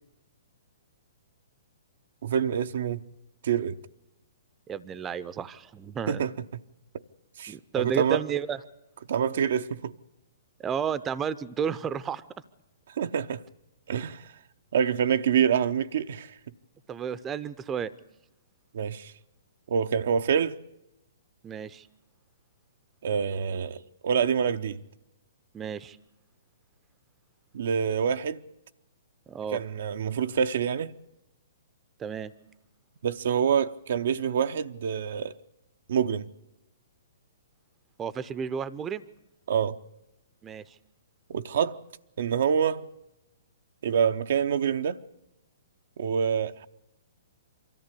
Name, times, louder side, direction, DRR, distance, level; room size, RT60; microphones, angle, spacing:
voice 1, 2.2-3.0 3.4-3.8 6.1-6.3 7.4-8.2 9.1-9.9 13.0-13.4 13.9-14.3 14.7-16.3 18.7-19.1 19.7-20.6 23.0-24.8 27.5-28.4 29.5-30.9 33.0-35.4 35.9-36.3 39.5-39.8 41.3-41.8 42.2-42.8 43.8-45.0 46.0-46.7, right 7 dB, 60° right, 0.7 m, -26 dB
voice 2, 4.7-6.2 7.5-8.6 10.6-12.2 16.9-17.9 21.4-21.9 25.5-26.0 29.3-29.6 32.0-32.3 38.0-39.0 40.4-40.6, right 7 dB, 20° right, 0.7 m, -32 dB
23.5 x 14.0 x 8.4 m
figure-of-eight pair, 120°, 0 cm